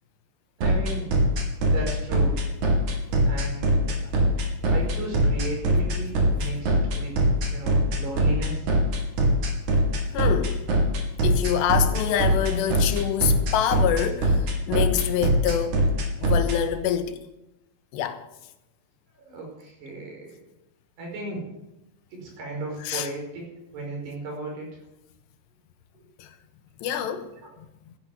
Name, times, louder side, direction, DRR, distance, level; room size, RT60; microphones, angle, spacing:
sound 1, 0.6-16.6, right 1 dB, 50° right, 3.5 m, -21 dB
voice 1, 0.6-1.1 1.7-2.4 3.1-4.0 4.7-7.2 7.5-8.7 19.1-20.4 21.0-21.4 22.1-24.7 26.0-26.1 27.4-27.5, right 2 dB, 70° right, 7.2 m, -35 dB
voice 2, 10.1-10.6 11.2-15.8 16.2-17.2 17.9-18.2 22.8-23.1 26.2-26.3 26.8-27.3, left 9 dB, 90° left, 3.3 m, -26 dB
12.5 x 10.5 x 9.5 m
omnidirectional pair, 4.9 m